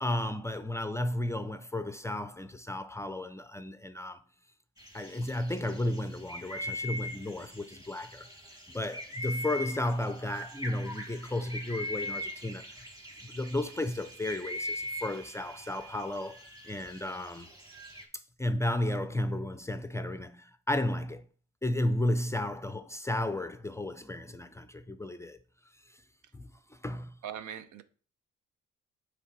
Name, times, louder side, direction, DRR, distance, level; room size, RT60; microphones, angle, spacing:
voice 1, 0.0-4.2 4.9-8.3 8.7-12.7 13.2-17.5 18.4-21.3 21.6-25.4 26.3-27.2, left 1 dB, 10° left, 0.4 m, -33 dB
sound 1, 4.8-18.0, left 1 dB, 10° right, 1.6 m, -41 dB
Microwave oven / Alarm, 12.1-16.1, right 17 dB, 35° right, 2.4 m, -56 dB
voice 2, 27.2-27.8, right 9 dB, 75° right, 0.7 m, -40 dB
6.7 x 3.3 x 5.2 m
cardioid pair, 90°, 30 cm